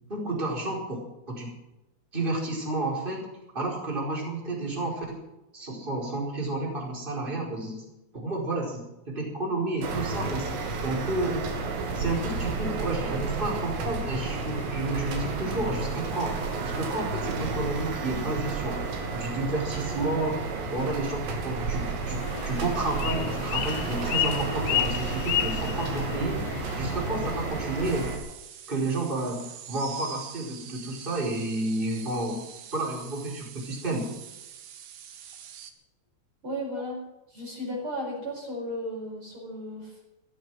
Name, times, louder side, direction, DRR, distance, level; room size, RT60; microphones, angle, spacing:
voice 1, 0.1-1.5 2.1-3.3 3.5-5.2 5.5-7.9 8.1-11.5 11.9-18.8 19.1-20.4 20.7-22.2 22.4-26.4 26.8-28.1 28.7-32.4 32.7-34.1, right 2 dB, 10° right, -2 dB, 4.8 m, -31 dB
sound 1, 9.8-28.2, right 4 dB, 85° right, 4.9 m, -31 dB
sound 2, 22.1-28.1, left 12 dB, 75° left, 2.7 m, -32 dB
sound 3, 27.8-35.7, right 8 dB, 60° right, 2.6 m, -45 dB
voice 2, 36.4-37.0 37.3-40.0, equal, 30° right, -1 dB, 5.4 m, -34 dB
16.0 x 13.5 x 6.3 m, 0.95 s
omnidirectional pair, 4.8 m